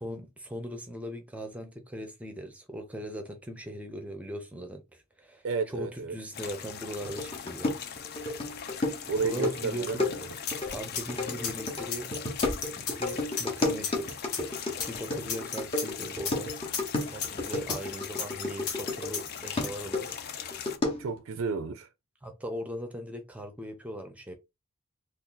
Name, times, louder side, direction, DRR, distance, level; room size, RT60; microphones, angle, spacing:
voice 1, 0.0-7.8 8.5-8.7 9.2-10.0 10.7-12.1 12.8-14.2 14.9-16.5 17.1-20.2 22.2-24.3, equal, 5° right, 0.6 m, -39 dB
voice 2, 5.4-6.1 9.1-10.3 21.0-21.9, right 4 dB, 60° right, 0.4 m, -31 dB
sound 1, 6.3-20.8, left 8 dB, 45° left, 0.4 m, -41 dB
sound 2, 7.0-19.2 19.6-21.2, left 2 dB, 25° left, 0.9 m, -33 dB
sound 3, 10.5-19.7, left 6 dB, 80° left, 0.9 m, -35 dB
2.7 x 2.5 x 3.7 m
head